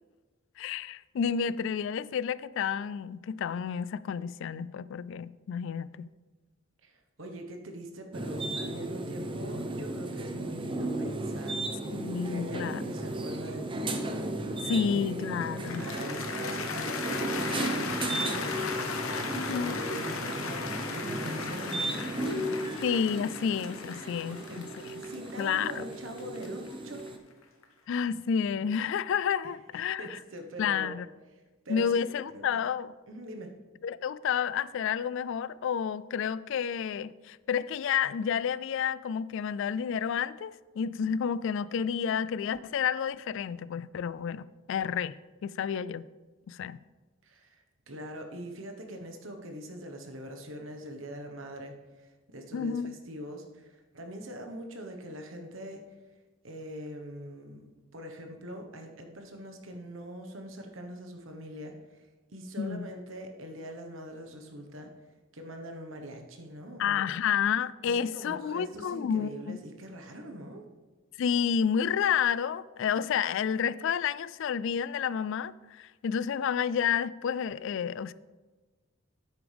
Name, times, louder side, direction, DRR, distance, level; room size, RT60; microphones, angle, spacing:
voice 1, 0.6-6.1 11.9-12.8 14.6-15.9 19.3-19.8 22.8-24.7 25.4-25.9 27.9-30.2 30.6-31.1 31.7-32.9 33.8-45.1 45.4-46.1 46.5-46.8 52.5-53.0 62.6-62.9 66.8-69.6 71.2-78.1, left 7 dB, 65° left, 0.3 m, -30 dB
voice 2, 6.8-11.6 12.2-14.1 14.7-15.3 15.8-18.8 19.7-22.6 23.9-27.1 29.4-30.9 31.6-32.0 32.3-32.6 33.1-33.5 47.2-55.9 56.4-57.6 57.9-62.1 62.3-64.9 65.3-67.1 67.8-70.6, equal, 70° right, 1.2 m, -43 dB
sound 1, 8.1-27.2, right 1 dB, 25° right, 0.7 m, -35 dB
Cheering / Applause, 15.4-27.6, left 4 dB, 85° left, 1.0 m, -37 dB
9.7 x 8.5 x 3.4 m
head